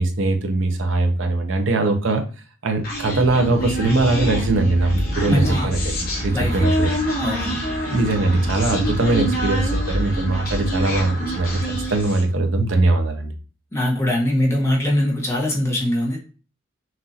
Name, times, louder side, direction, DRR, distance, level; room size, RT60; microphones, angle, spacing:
voice 1, 0.0-2.2 2.6-5.8 6.2-6.9 7.9-11.6 11.9-13.3, right 2 dB, 70° right, 5 dB, 0.8 m, -21 dB
Human voice, 2.8-12.3, equal, 45° left, 2.0 m, -25 dB
voice 2, 5.3-5.7 6.3-6.6 7.2-7.6 13.7-16.2, left 1 dB, 15° left, -3 dB, 1.2 m, -22 dB
5.9 x 2.6 x 2.8 m, 0.36 s
head